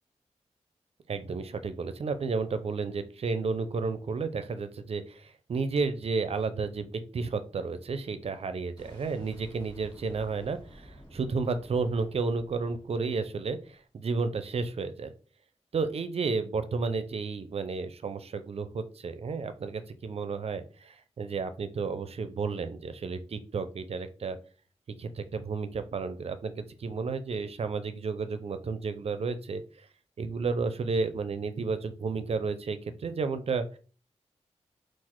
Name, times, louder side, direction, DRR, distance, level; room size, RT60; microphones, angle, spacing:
voice 1, 1.1-15.1 15.7-24.4 25.0-29.6 30.2-33.8, right 4 dB, 60° right, 11 dB, 0.5 m, -32 dB
Boom, 8.8-13.6, equal, 35° left, 1.6 m, -51 dB
3.9 x 2.4 x 4.4 m, 0.39 s
wide cardioid pair, 100°, 12 cm